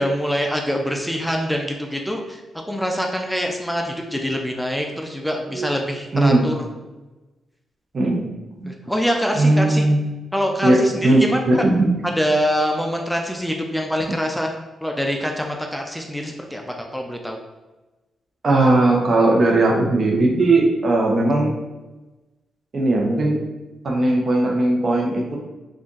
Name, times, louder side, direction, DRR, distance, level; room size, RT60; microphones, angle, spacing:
voice 1, 0.0-6.7 8.7-9.9 10.3-11.6 12.0-14.5 14.8-17.4, equal, ahead, 2 dB, 0.5 m, -24 dB
voice 2, 6.1-6.4 7.9-8.2 8.6-8.7 9.3-10.0 10.6-11.9 18.4-21.5 22.7-23.4 23.8-25.4, right 2 dB, 55° right, 0 dB, 0.8 m, -18 dB
3.6 x 2.5 x 3.9 m, 1.1 s
supercardioid pair, 55°, 0 cm